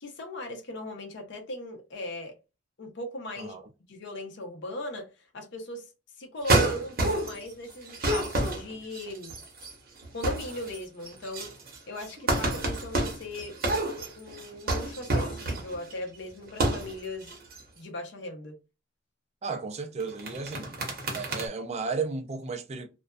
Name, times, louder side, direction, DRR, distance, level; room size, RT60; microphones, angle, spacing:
voice 1, 0.0-2.3 2.8-3.6 3.9-5.1 5.3-5.9 6.2-9.3 10.1-11.5 11.9-13.6 14.1-17.3 17.8-18.6, left 1 dB, 65° left, 0.7 m, -38 dB
sound 1, 6.4-7.5 7.8-9.7 10.0-10.8 11.0-15.9 16.5-16.9 17.2-17.6 20.0-21.5, right 2 dB, 50° right, 0.8 m, -29 dB
voice 2, 19.4-20.8 21.1-22.9, right 4 dB, 35° right, 0.4 m, -34 dB
2.5 x 2.2 x 2.2 m
head